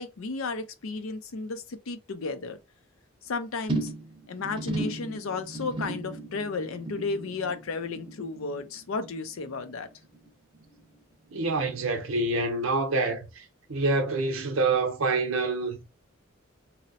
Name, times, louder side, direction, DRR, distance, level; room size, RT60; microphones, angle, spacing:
voice 1, 0.0-2.6 3.2-3.9 4.3-9.9, left 4 dB, 80° left, 0.5 m, -33 dB
sound 1, 3.7-10.3 10.5-11.0 11.3-11.4, right 2 dB, 25° right, 0.7 m, -36 dB
voice 2, 11.3-13.2 13.7-15.8, right 3 dB, 75° right, 0.7 m, -26 dB
2.7 x 2.0 x 4.0 m
head